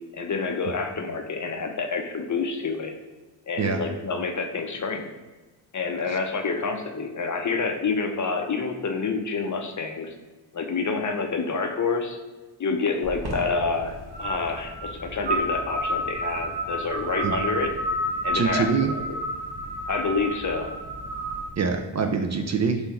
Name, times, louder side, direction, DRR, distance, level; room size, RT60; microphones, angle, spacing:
voice 1, 0.1-2.9 3.5-5.1 5.7-10.1 10.5-12.2 12.6-17.7 18.2-19.0 19.9-20.7, left 4 dB, 40° left, 5 dB, 0.6 m, -28 dB
sound 1, 13.0-21.5, right 1 dB, 55° right, 1.2 m, -31 dB
voice 2, 18.3-18.9 21.6-22.8, right 5 dB, 40° right, 4 dB, 0.4 m, -24 dB
3.7 x 2.7 x 4.3 m, 1.3 s
cardioid pair, 50°, 46 cm